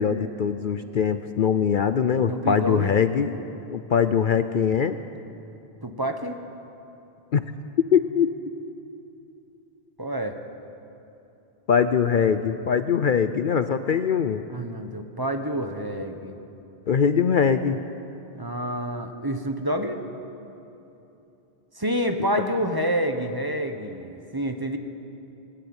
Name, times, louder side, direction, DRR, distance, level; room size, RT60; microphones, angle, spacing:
voice 1, 0.0-3.3 3.7-5.0 7.3-7.5 7.9-8.5 11.7-14.4 16.9-17.8, left 7 dB, 55° left, 10 dB, 0.7 m, -22 dB
voice 2, 2.1-3.0 5.8-6.4 10.0-10.4 14.5-16.4 18.3-20.0 21.7-24.8, equal, 20° right, 5 dB, 1.2 m, -28 dB
20.0 x 18.0 x 8.8 m, 2.9 s
omnidirectional pair, 1.1 m